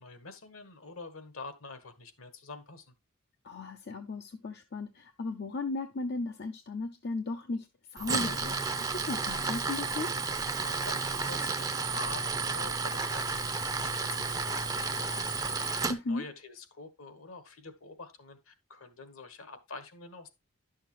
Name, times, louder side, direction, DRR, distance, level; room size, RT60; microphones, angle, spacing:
voice 1, 0.0-2.9 10.6-15.8 16.1-20.3, left 3 dB, 70° left, 1.4 m, -46 dB
voice 2, 3.4-8.6 8.9-10.1 15.9-16.3, left 3 dB, 50° left, 0.6 m, -36 dB
Tools, 8.0-15.9, right 4 dB, 15° right, 0.6 m, -32 dB
11.0 x 6.5 x 3.0 m
head